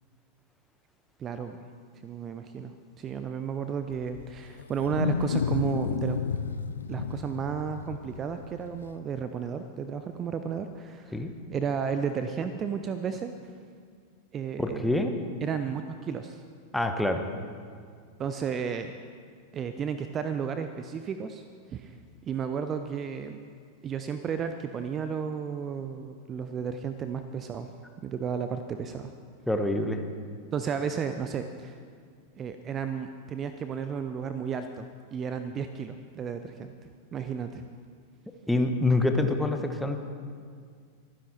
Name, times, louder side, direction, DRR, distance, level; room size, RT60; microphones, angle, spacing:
voice 1, 1.2-1.6 2.0-6.2 6.9-11.2 11.5-13.3 14.3-14.9 15.4-16.4 18.2-18.9 19.5-22.0 22.2-23.4 23.8-27.7 28.0-29.1 30.5-31.8 32.4-37.6, right 7 dB, 25° right, 9 dB, 0.6 m, -33 dB
Wild animals, 3.9-8.9, left 6 dB, 70° left, 0.5 m, -31 dB
voice 2, 14.6-15.1 16.7-17.2 29.5-30.0 38.5-40.0, left 2 dB, 5° left, 5 dB, 1.3 m, -26 dB
24.0 x 10.0 x 4.3 m, 2.1 s
figure-of-eight pair, 90°, 0 cm